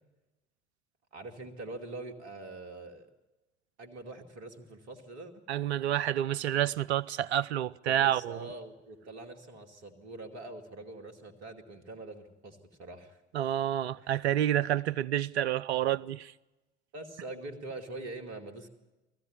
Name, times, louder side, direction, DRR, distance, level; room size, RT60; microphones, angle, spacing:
voice 1, 1.1-3.1 3.8-5.4 7.9-13.2 14.0-14.1 16.9-18.7, right 2 dB, 50° right, 2.5 m, -44 dB
voice 2, 5.5-8.5 13.3-16.3, right 11 dB, 70° right, 0.6 m, -29 dB
19.5 x 14.5 x 9.6 m
figure-of-eight pair, 65°, 34 cm